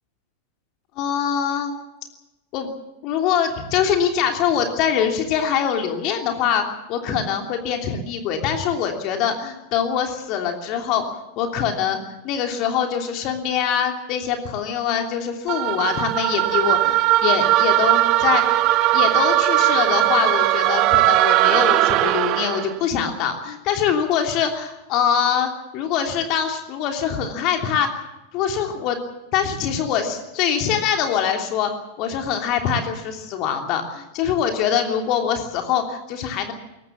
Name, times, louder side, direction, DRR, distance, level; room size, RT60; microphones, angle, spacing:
voice 1, 1.0-1.7 2.5-2.7 3.0-6.6 6.9-12.0 12.2-18.6 18.9-27.9 28.3-29.0 29.3-31.7 32.0-36.5, left 8 dB, 40° left, 4 dB, 3.1 m, -23 dB
sound 1, 15.5-22.7, right 15 dB, 40° right, 1.4 m, -19 dB
22.5 x 19.0 x 7.4 m, 0.98 s
figure-of-eight pair, 90°, 0 cm